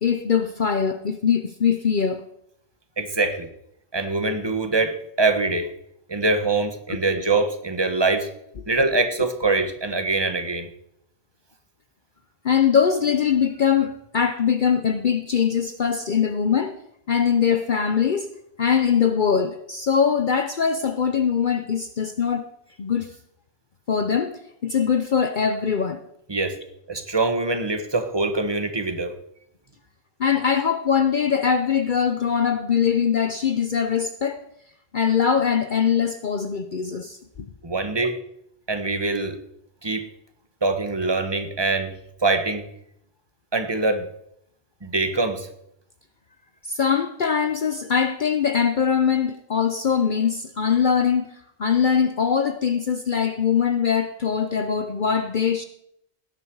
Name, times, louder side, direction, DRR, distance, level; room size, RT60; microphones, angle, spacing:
voice 1, 0.0-2.3 6.9-7.0 12.4-16.8 17.1-18.3 18.6-22.5 22.8-23.2 23.9-26.0 30.2-34.4 34.9-37.5 46.6-55.6, left 7 dB, 50° left, 9 dB, 0.9 m, -22 dB
voice 2, 3.0-3.5 3.9-5.7 6.1-8.3 8.7-10.7 26.3-26.6 26.9-29.1 37.6-38.2 38.7-39.4 39.8-40.1 40.6-42.7 43.5-44.1 44.8-45.5, right 3 dB, 25° right, 8 dB, 1.4 m, -24 dB
18.0 x 10.5 x 4.8 m, 0.74 s
omnidirectional pair, 1.1 m